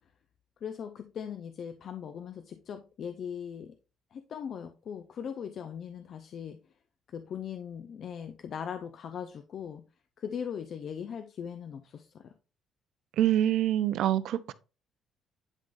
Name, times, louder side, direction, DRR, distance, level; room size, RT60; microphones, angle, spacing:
voice 1, 0.6-3.8 4.1-6.6 7.1-9.8 10.2-12.3, left 8 dB, 50° left, 0.5 m, -39 dB
voice 2, 13.2-14.5, right 12 dB, 70° right, 0.6 m, -25 dB
10.5 x 3.7 x 2.6 m
cardioid pair, 145°, 0 cm